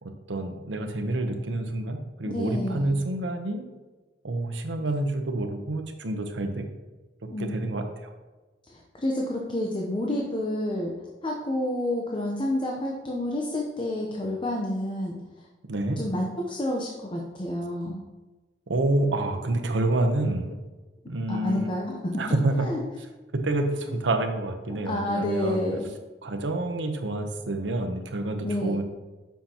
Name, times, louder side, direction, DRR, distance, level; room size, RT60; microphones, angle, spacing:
voice 1, 0.0-3.6 4.2-6.6 7.4-8.1 15.7-16.0 18.7-20.6 21.1-21.7 22.2-22.7 23.4-25.6 26.2-28.8, right 2 dB, 90° right, 6 dB, 0.8 m, -28 dB
voice 2, 2.2-3.0 7.3-7.5 8.7-10.9 11.2-15.2 16.0-18.0 21.3-22.0 22.6-22.8 24.9-25.8 28.4-28.8, left 1 dB, 30° left, -1 dB, 0.7 m, -29 dB
7.4 x 5.7 x 2.9 m, 1.2 s
head